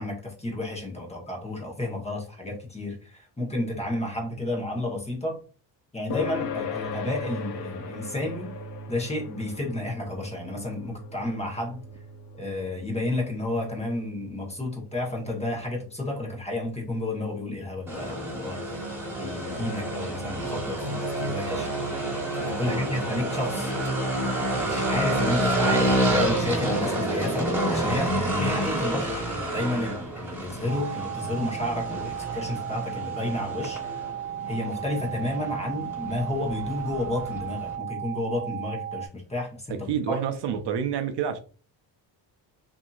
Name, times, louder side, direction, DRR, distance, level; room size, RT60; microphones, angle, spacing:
voice 1, 0.0-5.4 5.9-8.6 8.9-11.9 12.4-18.6 19.2-21.7 22.4-23.7 24.6-33.8 34.5-40.2, left 2 dB, 15° left, 1.0 m, -31 dB
sound 1, 6.1-21.0, left 4 dB, 50° left, 0.6 m, -40 dB
sound 2, 17.9-37.7, right 1 dB, 5° right, 1.5 m, -29 dB
voice 2, 22.6-22.9 39.9-41.4, right 8 dB, 65° right, 0.6 m, -29 dB
sound 3, 30.7-39.1, right 11 dB, 30° right, 1.1 m, -35 dB
2.7 x 2.7 x 2.3 m
cardioid pair, 100°, 46 cm